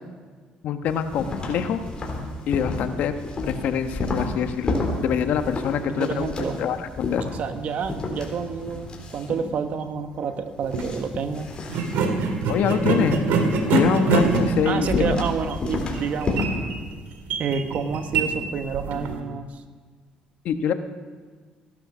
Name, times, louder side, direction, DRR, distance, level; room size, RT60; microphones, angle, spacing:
voice 1, 0.6-1.8 2.5-3.1 3.4-6.3 6.6-7.3 12.5-13.3 13.7-15.0 20.4-20.7, left 8 dB, 70° left, 8 dB, 1.2 m, -24 dB
sound 1, 0.9-16.5, left 2 dB, 35° left, 3.8 m, -31 dB
voice 2, 5.9-6.6 7.4-11.6 14.6-16.4 17.4-19.6, right 6 dB, 55° right, 8 dB, 1.3 m, -29 dB
sound 2, 10.6-10.9 11.7-19.2, right 4 dB, 80° right, 1.9 m, -25 dB
16.5 x 12.0 x 6.1 m, 1.6 s
cardioid pair, 100°, 3 cm